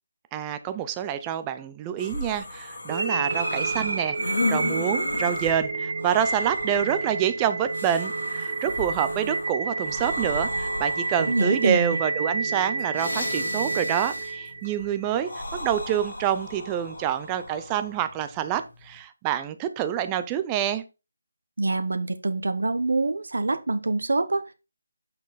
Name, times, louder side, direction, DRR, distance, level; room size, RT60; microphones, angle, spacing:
voice 1, 0.3-20.8, right 10 dB, 10° right, 10 dB, 0.4 m, -27 dB
sound 1, 2.0-19.0, left 2 dB, 60° left, 3.3 m, -35 dB
sound 2, 2.9-14.9, right 3 dB, 45° right, 1.1 m, -29 dB
voice 2, 11.2-12.0 21.6-24.5, right 2 dB, 80° right, 10 dB, 0.8 m, -25 dB
6.3 x 5.3 x 4.0 m, 0.28 s
hypercardioid pair, 175°, 0 cm